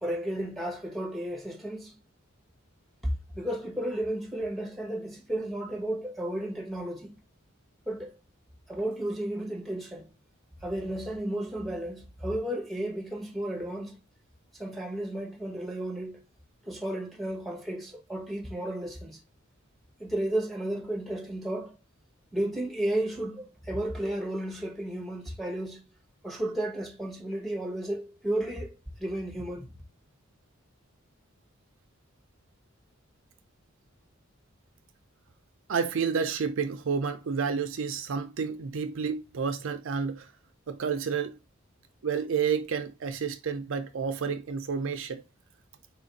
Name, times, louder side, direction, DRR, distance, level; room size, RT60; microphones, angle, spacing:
voice 1, 0.0-1.9 3.3-7.1 7.9-8.1 8.7-10.1 10.6-14.0 14.5-16.2 16.6-19.2 20.0-21.7 22.3-25.8 26.2-29.7, right 1 dB, ahead, 0.9 m, -33 dB
voice 2, 35.7-40.3 40.7-41.4 42.0-45.2, right 6 dB, 65° right, 0.5 m, -30 dB
4.4 x 2.5 x 3.9 m
head